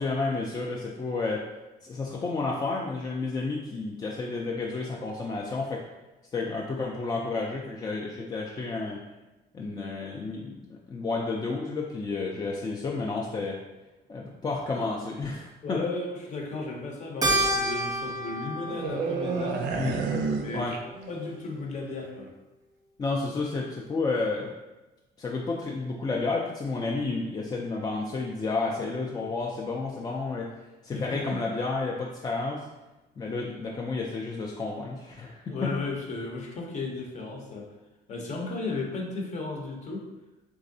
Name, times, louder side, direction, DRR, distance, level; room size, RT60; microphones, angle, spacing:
voice 1, 0.0-1.4 1.8-5.8 6.3-9.0 9.5-13.6 14.1-15.8 19.8-20.0 20.5-20.8 23.0-24.5 25.2-30.5 30.8-32.7 33.2-35.7, left 3 dB, 25° left, -2 dB, 0.4 m, -31 dB
voice 2, 15.6-19.7 20.4-22.3 30.9-31.4 35.5-37.7 38.1-40.1, left 3 dB, 45° left, 0 dB, 0.8 m, -35 dB
Keyboard (musical), 17.2-21.8, right 1 dB, 20° right, 0.6 m, -31 dB
sound 1, 18.7-21.4 21.6-21.9, right 5 dB, 85° right, 0.5 m, -30 dB
3.6 x 3.1 x 2.6 m, 1.1 s
cardioid pair, 110°, 17 cm